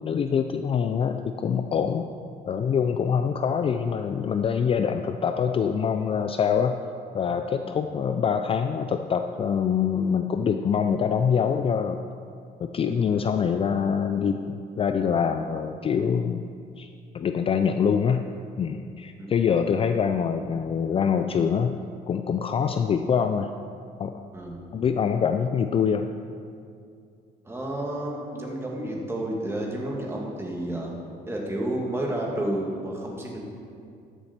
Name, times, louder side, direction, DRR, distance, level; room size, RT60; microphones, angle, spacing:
voice 1, 0.0-2.1 2.5-6.8 7.1-12.0 12.6-16.5 16.8-18.2 18.6-21.8 22.1-23.5 24.0-24.2 24.7-26.1, left 7 dB, 35° left, 7 dB, 0.4 m, -25 dB
voice 2, 27.4-30.9 31.3-33.4, right 1 dB, 15° right, -2 dB, 2.2 m, -31 dB
13.0 x 7.3 x 4.4 m, 2.4 s
cardioid pair, 110°, 17 cm